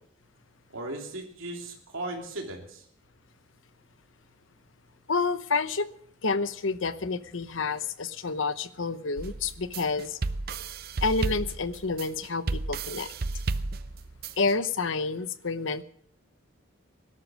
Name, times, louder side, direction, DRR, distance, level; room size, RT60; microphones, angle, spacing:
voice 1, 0.7-2.8, right 1 dB, 90° right, 1 dB, 3.0 m, -37 dB
voice 2, 5.1-5.9 6.2-10.2 11.0-13.1 14.4-15.8, left 4 dB, 75° left, 13 dB, 0.9 m, -29 dB
sound 1, 9.2-14.5, right 3 dB, 50° right, 0.6 m, -33 dB
18.0 x 12.5 x 6.3 m, 0.65 s
head